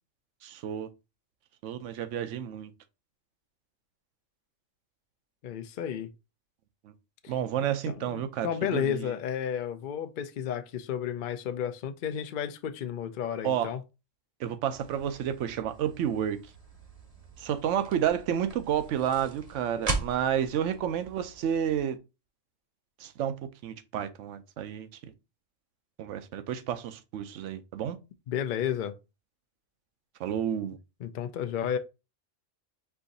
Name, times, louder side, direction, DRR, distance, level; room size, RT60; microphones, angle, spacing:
voice 1, 0.4-0.9 1.6-2.7 6.8-6.9 7.3-9.1 13.4-13.7 14.4-16.4 17.4-22.0 23.0-23.3 23.6-24.9 26.0-28.0 30.2-30.8, right 9 dB, 75° right, 0.9 m, -30 dB
voice 2, 5.4-6.1 7.2-7.3 7.6-13.8 28.3-28.9 31.0-31.8, left 9 dB, 60° left, 0.5 m, -32 dB
sound 1, 14.7-21.8, right 3 dB, 35° right, 0.8 m, -40 dB
4.7 x 2.6 x 3.9 m
omnidirectional pair, 1.3 m